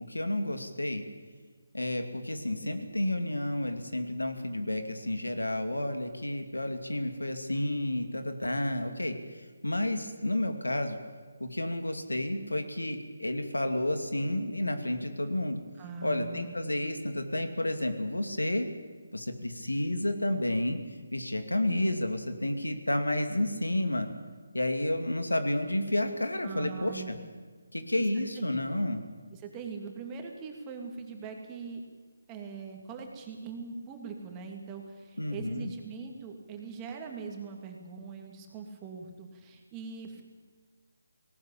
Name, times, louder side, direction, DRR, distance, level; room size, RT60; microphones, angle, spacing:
voice 1, 0.1-1.0 1.7-11.0 11.4-15.6 16.0-18.7 19.1-20.8 21.1-24.1 24.5-27.1 27.7-29.0 35.2-35.7, left 1 dB, 90° left, 7 dB, 2.6 m, -31 dB
voice 2, 15.8-16.5 26.4-27.2 28.0-28.1 28.3-28.8 29.3-31.8 32.3-40.2, right 5 dB, 15° right, 2 dB, 2.7 m, -42 dB
18.5 x 18.5 x 8.8 m, 1.5 s
figure-of-eight pair, 155°, 0 cm